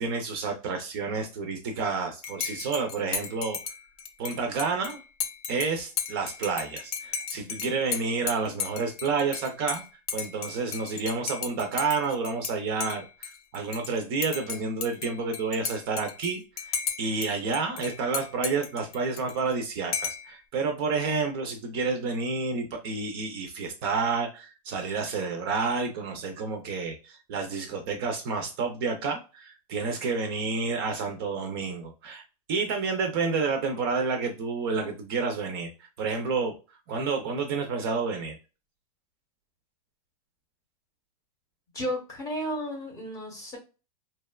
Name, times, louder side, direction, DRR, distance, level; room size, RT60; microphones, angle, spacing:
voice 1, 0.0-3.6 4.2-5.0 5.5-9.8 10.1-32.2 32.5-35.7 36.0-36.5 36.9-38.4, right 4 dB, 40° right, 4 dB, 0.4 m, -29 dB
Dishes pots and pans / Cutlery silverware / Chink clink, 2.2-12.5 12.8-13.9 14.2-17.3 17.5-19.5 19.9-20.3, left 7 dB, 70° left, 0.5 m, -35 dB
voice 2, 41.7-43.6, equal, 15° left, 1 dB, 0.7 m, -33 dB
2.8 x 2.2 x 2.2 m, 0.31 s
supercardioid pair, 160°, 20 cm